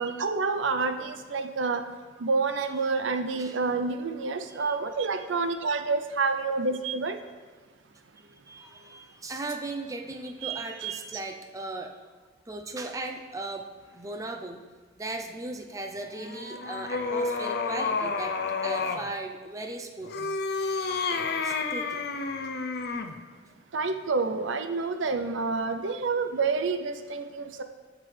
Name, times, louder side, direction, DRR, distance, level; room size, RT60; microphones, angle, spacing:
voice 1, 0.0-1.8 2.2-7.2 10.4-11.2 23.7-27.6, right 4 dB, 85° right, 8 dB, 0.6 m, -28 dB
voice 2, 8.2-11.9 12.5-14.6 15.0-18.4 18.6-20.1 21.4-22.0, right 2 dB, 15° right, 4 dB, 0.5 m, -37 dB
sound 1, 16.1-19.1 20.0-23.2, left 4 dB, 55° left, 0.5 m, -30 dB
14.5 x 6.0 x 3.3 m, 1.4 s
head